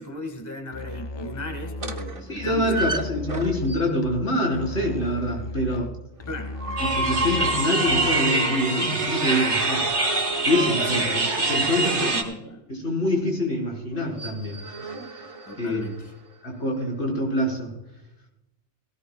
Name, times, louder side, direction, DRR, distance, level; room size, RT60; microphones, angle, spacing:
voice 1, 0.0-2.9 6.3-6.8 10.8-11.1 11.8-12.6 15.4-16.1, equal, 15° left, 4 dB, 1.5 m, -36 dB
Musical instrument, 0.7-8.3, left 2 dB, 45° left, 0.3 m, -36 dB
sound 1, 1.8-4.1 6.3-10.3 14.0-16.2, right 2 dB, 30° right, 0.9 m, -33 dB
voice 2, 2.3-6.0 6.8-9.9 10.4-12.1 12.7-14.7 15.6-16.0 16.4-17.8, left 1 dB, 70° left, -1 dB, 4.3 m, -25 dB
sound 2, 6.8-12.2, right 3 dB, 75° right, 2.1 m, -24 dB
18.0 x 17.5 x 2.3 m, 0.89 s
omnidirectional pair, 1.2 m